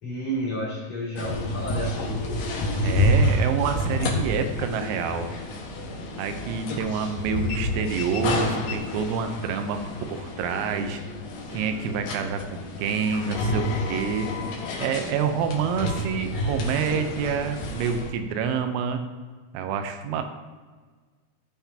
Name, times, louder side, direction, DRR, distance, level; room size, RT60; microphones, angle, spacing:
voice 1, 0.0-2.3, equal, 40° left, -7 dB, 3.3 m, -31 dB
sound 1, 1.2-18.1, left 1 dB, 65° left, 2.8 m, -29 dB
voice 2, 2.8-5.3 6.2-9.8 10.1-11.0 11.5-14.3 14.8-19.0 19.5-20.2, right 6 dB, 90° right, 7 dB, 3.6 m, -27 dB
17.0 x 5.9 x 2.8 m, 1.4 s
omnidirectional pair, 5.9 m